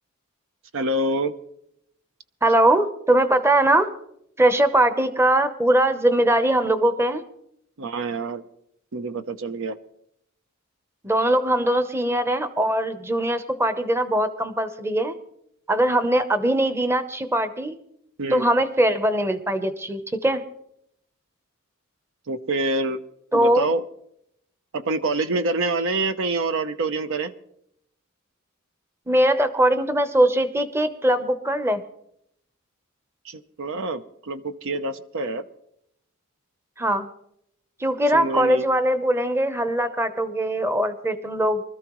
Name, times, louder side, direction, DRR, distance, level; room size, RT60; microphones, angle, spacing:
voice 1, 0.7-1.3 7.8-8.4 8.9-9.8 18.2-18.5 22.3-23.0 23.3-23.8 24.7-27.3 33.2-35.4 38.1-38.7, right 2 dB, 70° right, 10 dB, 0.7 m, -26 dB
voice 2, 2.4-3.9 4.4-7.2 11.0-15.1 15.7-17.8 18.3-20.4 23.3-23.7 29.1-31.8 36.8-37.1 37.8-41.6, right 1 dB, 10° right, 10 dB, 0.8 m, -21 dB
24.5 x 13.5 x 3.1 m, 0.76 s
head